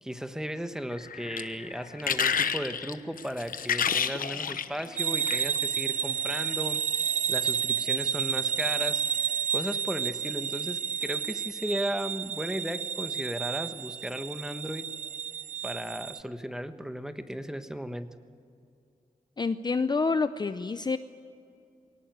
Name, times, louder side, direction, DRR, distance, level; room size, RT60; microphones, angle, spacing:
voice 1, 0.0-6.8 7.3-9.0 9.5-14.9 15.6-18.1, equal, 5° right, 9 dB, 1.2 m, -35 dB
sound 1, 0.9-5.6 6.3-6.5, left 7 dB, 80° left, 1.0 m, -30 dB
sound 2, 5.0-16.2, right 7 dB, 55° right, 0.5 m, -31 dB
voice 2, 19.4-21.0, left 4 dB, 30° left, 11 dB, 0.6 m, -27 dB
22.5 x 18.5 x 9.4 m, 2.4 s
wide cardioid pair, 120°, 14 cm